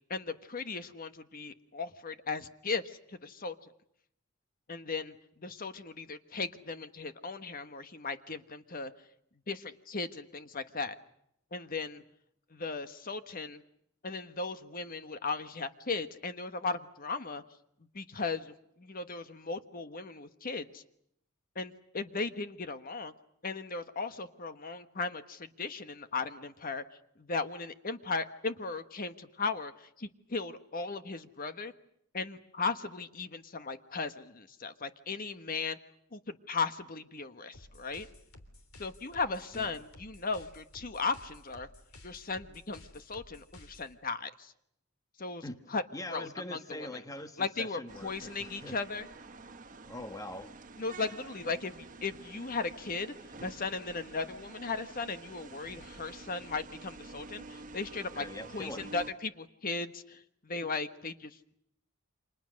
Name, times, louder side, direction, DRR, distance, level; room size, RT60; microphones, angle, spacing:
voice 1, 0.1-3.5 4.7-8.9 9.5-10.9 11.5-12.0 12.5-13.6 14.0-17.4 17.9-20.8 21.5-23.1 23.4-26.8 27.2-31.7 32.1-35.8 36.1-38.1 38.8-41.7 42.0-44.5 45.2-45.4 45.7-45.8 46.1-46.9 47.4-49.1 50.8-53.1 53.4-58.2 58.5-61.4, left 4 dB, 45° left, 10 dB, 1.3 m, -37 dB
sound 1, 37.5-43.9, left 1 dB, 85° left, 3.3 m, -54 dB
voice 2, 45.4-48.8 49.9-50.5 58.1-58.9, left 1 dB, 15° left, 8 dB, 1.2 m, -43 dB
sound 2, 47.9-59.1, right 3 dB, 40° right, 1.3 m, -49 dB
30.0 x 26.5 x 6.5 m, 0.74 s
head